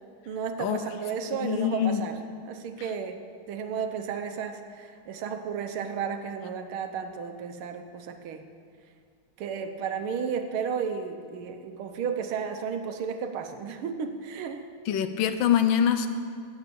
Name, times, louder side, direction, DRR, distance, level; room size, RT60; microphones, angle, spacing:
voice 1, 0.3-2.2 2.5-3.2 3.5-8.4 9.4-14.7, right 6 dB, 85° right, 7 dB, 1.8 m, -33 dB
voice 2, 1.3-2.0 2.8-2.9 14.9-16.1, left 9 dB, 75° left, 10 dB, 1.4 m, -24 dB
16.0 x 5.9 x 8.4 m, 2.2 s
omnidirectional pair, 2.3 m